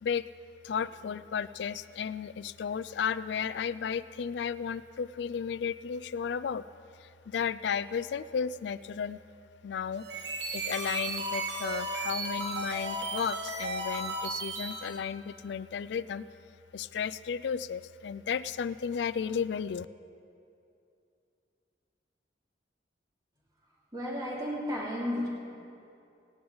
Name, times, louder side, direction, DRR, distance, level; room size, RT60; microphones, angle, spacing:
voice 1, 0.6-6.6 7.0-9.2 9.6-10.0 10.5-16.2 16.7-19.9, left 7 dB, 70° left, 16 dB, 0.3 m, -34 dB
sound 1, 10.0-15.0, right 2 dB, 65° right, 1.6 m, -35 dB
voice 2, 23.9-25.3, left 1 dB, 20° right, -5 dB, 2.9 m, -33 dB
18.5 x 10.5 x 4.0 m, 2.6 s
head